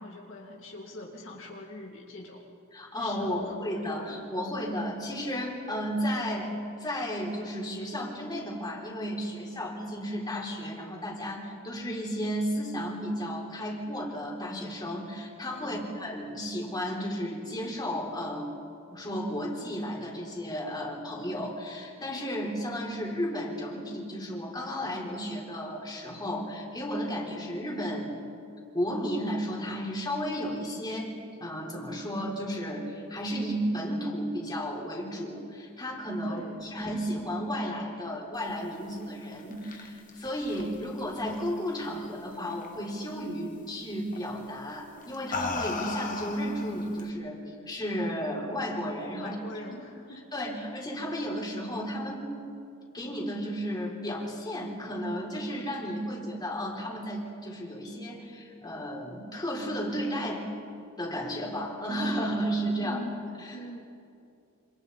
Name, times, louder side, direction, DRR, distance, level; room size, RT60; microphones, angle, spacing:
voice 1, 0.0-2.4 3.0-3.9 15.6-16.0 36.3-36.7 49.2-50.2 62.8-63.8, left 1 dB, 65° left, -1 dB, 2.2 m, -43 dB
voice 2, 2.7-6.5 6.8-18.5 18.9-28.2 28.7-31.1 31.4-49.4 50.3-52.3 52.9-60.5 61.0-63.0 63.4-63.6, equal, 20° left, -2 dB, 4.0 m, -33 dB
sound 1, 39.2-42.1 42.5-42.9 44.1-44.3 45.0-47.1, left 4 dB, 40° left, 1.5 m, -36 dB
27.5 x 27.0 x 4.1 m, 2.5 s
head